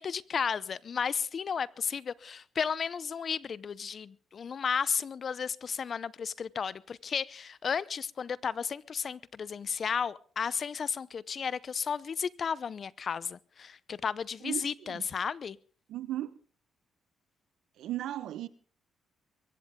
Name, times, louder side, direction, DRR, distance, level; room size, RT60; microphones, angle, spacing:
voice 1, 0.0-15.6, left 6 dB, 50° left, 0.7 m, -33 dB
voice 2, 14.4-15.0 15.9-16.3 17.8-18.5, right 13 dB, 80° right, 1.0 m, -36 dB
22.5 x 16.0 x 3.7 m
cardioid pair, 90°, 0 cm